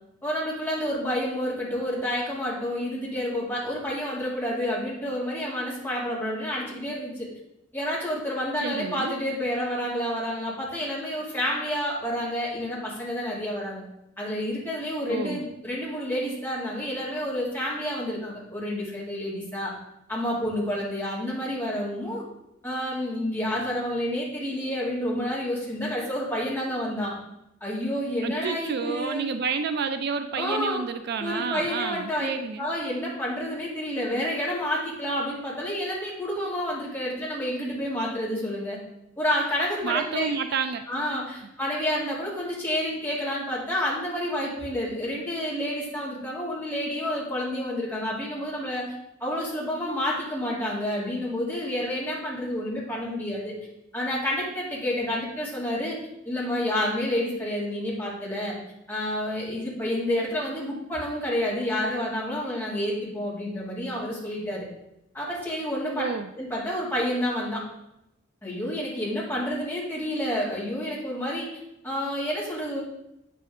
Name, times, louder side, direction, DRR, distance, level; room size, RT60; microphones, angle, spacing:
voice 1, 0.2-7.3 7.7-13.8 14.2-19.7 20.1-22.2 22.6-27.2 27.6-29.2 30.3-30.8 31.2-32.3 32.6-38.8 39.2-40.3 40.9-48.9 49.2-53.5 53.9-56.0 56.2-58.6 58.9-64.7 65.1-66.0 66.4-67.6 68.4-71.5 71.8-72.8, equal, 10° left, -6 dB, 2.4 m, -29 dB
voice 2, 8.6-9.1 15.1-15.4 28.2-32.7 39.8-40.9 66.0-66.3, right 5 dB, 55° right, 9 dB, 0.4 m, -30 dB
8.2 x 6.8 x 3.7 m, 0.82 s
head